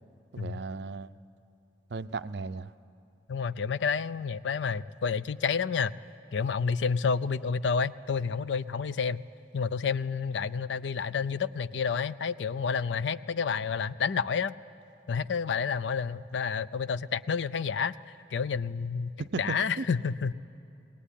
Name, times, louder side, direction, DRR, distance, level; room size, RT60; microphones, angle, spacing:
voice 1, 0.3-1.1 1.9-2.7 19.2-20.1, right 4 dB, 65° right, 13 dB, 0.5 m, -36 dB
voice 2, 3.3-5.9 6.3-9.2 9.5-14.5 15.1-18.0 18.3-19.1 19.4-20.3, left 6 dB, 80° left, 17 dB, 0.5 m, -29 dB
20.5 x 18.5 x 10.0 m, 2.6 s
head